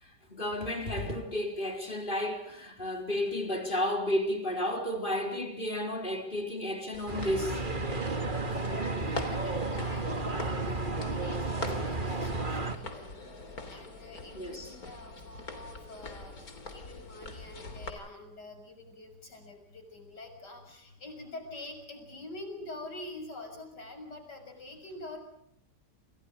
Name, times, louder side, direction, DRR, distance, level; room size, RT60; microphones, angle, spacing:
voice 1, 0.0-7.6 8.5-8.7 14.3-14.7, left 1 dB, 30° left, 4.5 m, -32 dB
sound 1, 6.9-17.9, left 2 dB, 55° left, 3.8 m, -43 dB
sound 2, 7.1-12.8, right 3 dB, 30° right, 2.2 m, -32 dB
voice 2, 8.6-13.1 13.7-25.2, left 2 dB, 70° left, 7.1 m, -46 dB
29.0 x 28.5 x 5.1 m
omnidirectional pair, 1.9 m